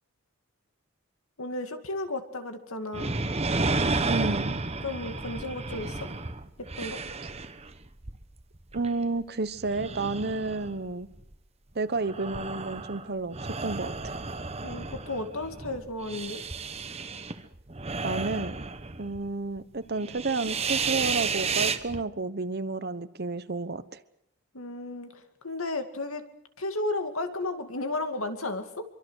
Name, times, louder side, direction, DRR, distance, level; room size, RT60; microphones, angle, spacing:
voice 1, 1.4-3.2 4.8-6.1 6.6-7.0 14.6-16.4 24.5-26.2 26.6-28.8, left 2 dB, 75° left, 7 dB, 2.5 m, -33 dB
sound 1, 2.9-9.2 9.6-11.3 11.9-19.3 19.6-19.7 20.0-22.0, right 4 dB, 30° right, 1.2 m, -32 dB
voice 2, 4.1-4.6 8.7-11.1 11.7-13.4 13.6-13.9 18.0-18.5 19.0-23.8, right 3 dB, 50° right, 13 dB, 1.1 m, -31 dB
25.5 x 24.0 x 6.5 m, 0.78 s
head